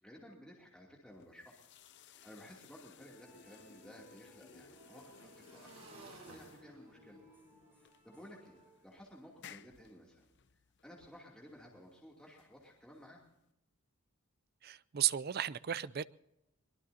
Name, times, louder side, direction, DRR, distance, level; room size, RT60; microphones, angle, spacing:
voice 1, 0.0-1.6 2.0-7.2 7.8-8.6 8.8-10.3 10.8-13.2, equal, 5° left, 2.7 m, -56 dB
sound 1, 1.1-13.5, left 7 dB, 55° left, 0.6 m, -60 dB
Motorcycle / Engine, 1.8-1.9 2.2-9.3, right 2 dB, 75° right, 5.9 m, -60 dB
sound 2, 3.1-9.3, right 3 dB, 10° right, 7.8 m, -66 dB
voice 2, 14.6-16.0, right 11 dB, 45° right, 0.5 m, -34 dB
23.0 x 22.0 x 2.8 m
head